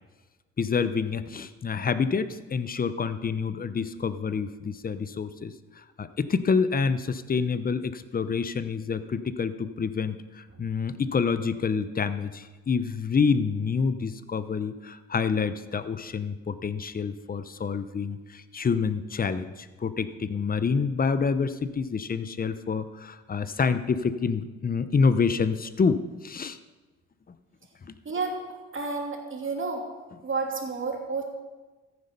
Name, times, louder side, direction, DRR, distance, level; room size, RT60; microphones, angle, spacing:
voice 1, 0.6-5.5 6.0-26.6 27.9-28.0, left 5 dB, 30° left, 12 dB, 0.8 m, -27 dB
voice 2, 28.0-28.4 28.7-29.8 30.2-31.2, right 4 dB, 40° right, 1 dB, 3.0 m, -30 dB
14.5 x 9.7 x 5.4 m, 1.2 s
cardioid pair, 90°, 30 cm